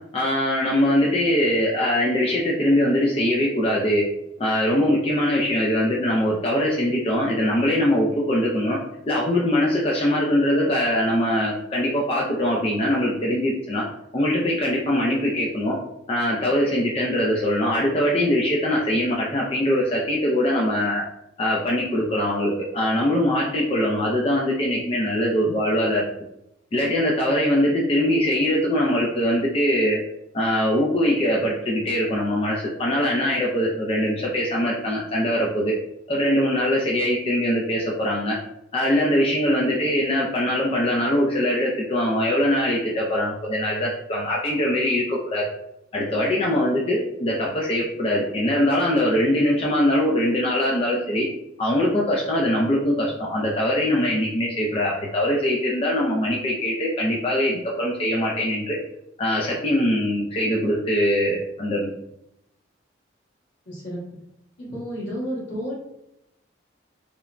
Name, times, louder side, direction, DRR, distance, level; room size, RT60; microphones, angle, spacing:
voice 1, 0.1-4.0 4.4-8.8 9.0-13.8 14.1-15.8 16.1-21.0 21.4-26.1 26.7-30.0 30.3-35.7 36.1-38.4 38.7-45.4 45.9-51.3 51.6-58.8 59.2-61.9, left 1 dB, 30° left, -3 dB, 0.3 m, -22 dB
voice 2, 63.7-64.0 64.6-65.7, equal, 80° left, -7 dB, 1.4 m, -31 dB
3.0 x 2.1 x 2.4 m, 0.82 s
head